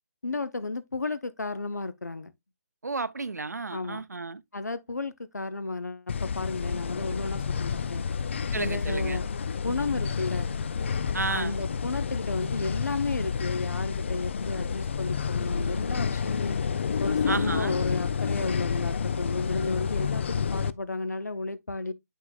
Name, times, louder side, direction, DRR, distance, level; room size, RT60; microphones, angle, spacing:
voice 1, 0.2-2.3 3.7-4.1 4.5-8.1 8.5-9.3 9.6-10.5 11.3-16.6 17.0-21.9, left 3 dB, 85° left, 0.8 m, -33 dB
voice 2, 2.8-4.4 8.5-9.2 11.1-11.6 17.3-17.8, right 3 dB, 80° right, 0.7 m, -32 dB
sound 1, 6.1-20.7, left 6 dB, 45° left, 0.4 m, -29 dB
8.2 x 5.6 x 2.4 m
figure-of-eight pair, 150°, 9 cm